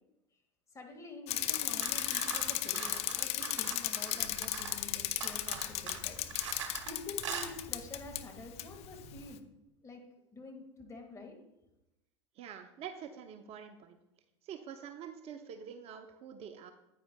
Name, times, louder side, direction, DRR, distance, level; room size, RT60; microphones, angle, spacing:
voice 1, 0.7-6.2 6.6-9.4 9.8-10.0 10.3-11.4, left 3 dB, 20° left, 2 dB, 1.8 m, -48 dB
Bicycle, 1.3-8.2 8.6-8.7, left 14 dB, 45° left, 0.5 m, -35 dB
sound 1, 1.5-4.8 5.2-6.9 7.2-7.5, right 6 dB, 75° right, 1.0 m, -42 dB
sound 2, 4.2-9.3, equal, 65° left, 2.4 m, -54 dB
voice 2, 12.4-14.0 14.4-16.7, right 8 dB, 40° right, 7 dB, 0.7 m, -46 dB
9.4 x 9.0 x 2.2 m, 0.91 s
hypercardioid pair, 85°, 15 cm